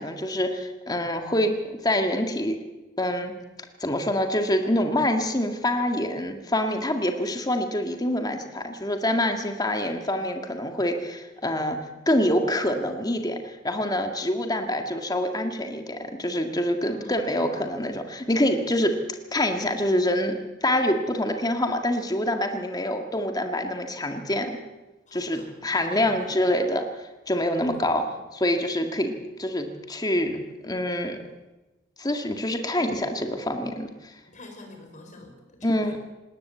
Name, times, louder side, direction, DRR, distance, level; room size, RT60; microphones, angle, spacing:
voice 1, 0.0-2.6 3.0-3.3 3.8-11.8 12.1-24.6 25.1-26.9 27.3-31.2 32.0-34.1 35.6-36.0, left 1 dB, 20° left, 5 dB, 1.8 m, -26 dB
voice 2, 16.8-17.9 25.1-26.4 27.7-27.9 34.3-36.0, left 2 dB, 40° left, 4 dB, 5.0 m, -47 dB
19.0 x 18.5 x 8.3 m, 1.1 s
head